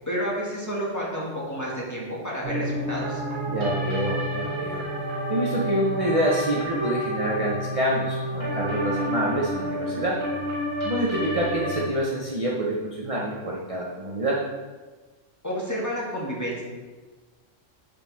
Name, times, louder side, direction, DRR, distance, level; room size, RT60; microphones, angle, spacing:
voice 1, 0.1-3.2 15.4-16.6, equal, 15° left, -5 dB, 2.0 m, -30 dB
sound 1, 2.4-11.9, equal, 55° right, 1.8 m, -29 dB
voice 2, 3.5-4.9 5.3-10.2 10.8-14.4, right 1 dB, 30° right, -3 dB, 0.9 m, -27 dB
11.5 x 4.6 x 3.5 m, 1.3 s
omnidirectional pair, 1.3 m